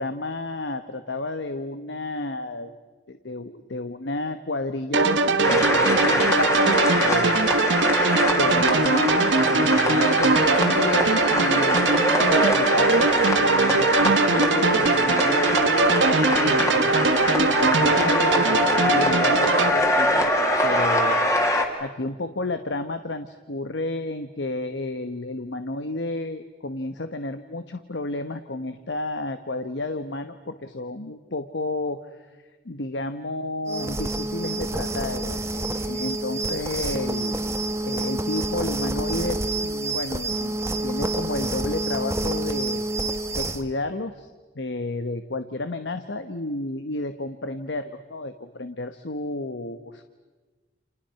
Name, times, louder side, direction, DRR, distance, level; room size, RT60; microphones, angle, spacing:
voice 1, 0.0-2.7 3.1-7.3 8.3-16.9 17.4-21.2 21.8-32.0 32.6-37.4 37.8-42.8 43.4-44.3 44.5-50.0, left 2 dB, 75° left, 9 dB, 1.1 m, -31 dB
sound 1, 4.9-19.7, right 3 dB, 85° right, 1.5 m, -21 dB
sound 2, 5.4-21.6, left 1 dB, 15° left, 2.6 m, -24 dB
sound 3, 33.7-43.6, right 2 dB, 15° right, 1.3 m, -28 dB
29.5 x 29.0 x 5.8 m, 1.3 s
head